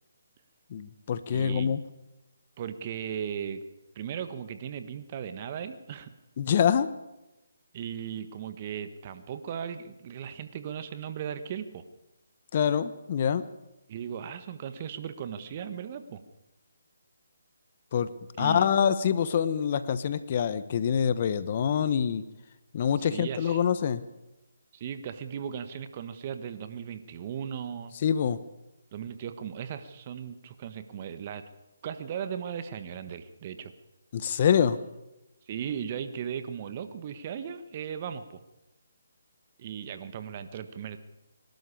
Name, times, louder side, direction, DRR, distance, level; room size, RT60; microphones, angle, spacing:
voice 1, 0.7-1.8 6.4-6.9 12.5-13.4 17.9-18.1 18.4-22.2 22.7-24.0 28.0-28.4 34.1-34.8, left 8 dB, 40° left, 13 dB, 1.1 m, -25 dB
voice 2, 1.3-1.7 2.6-3.6 3.9-6.1 7.7-11.8 13.9-16.2 18.4-18.7 23.0-23.6 24.7-27.9 28.9-31.4 31.8-33.7 35.5-38.4 39.6-41.0, right 8 dB, 35° right, 10 dB, 1.5 m, -37 dB
24.5 x 12.5 x 8.5 m, 0.97 s
figure-of-eight pair, 150°, 0 cm